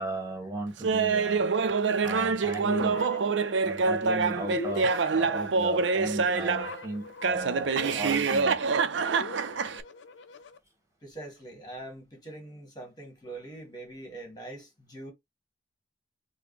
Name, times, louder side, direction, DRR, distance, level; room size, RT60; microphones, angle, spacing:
voice 1, 0.0-1.5 2.0-3.1 3.6-8.7, right 2 dB, 15° right, 1.8 m, -36 dB
Laughter, 0.8-6.8 7.2-9.8, right 4 dB, 80° right, 0.5 m, -26 dB
sound 1, 2.6-10.6, left 3 dB, 80° left, 0.5 m, -42 dB
voice 2, 11.0-15.1, right 2 dB, 25° left, 1.9 m, -43 dB
5.0 x 2.2 x 3.2 m
head